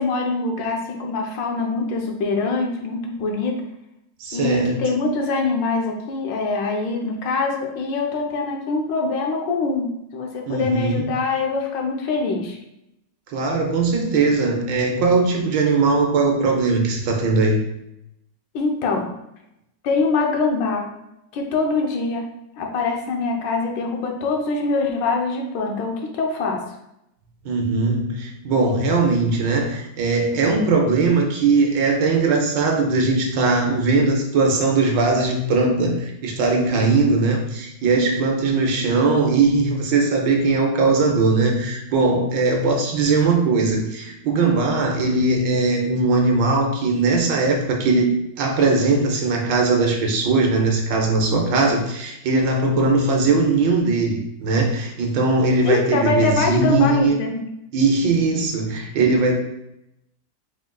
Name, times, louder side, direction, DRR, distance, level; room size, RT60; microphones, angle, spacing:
voice 1, 0.0-3.6 4.3-12.6 18.5-19.1 19.8-20.9 21.3-26.6 55.6-57.4, left 3 dB, 80° left, 1 dB, 1.4 m, -24 dB
voice 2, 4.2-4.7 10.5-11.1 13.3-17.6 27.4-57.2 57.7-59.3, right 3 dB, 80° right, 2 dB, 1.5 m, -20 dB
4.5 x 3.7 x 2.2 m, 0.83 s
omnidirectional pair, 2.0 m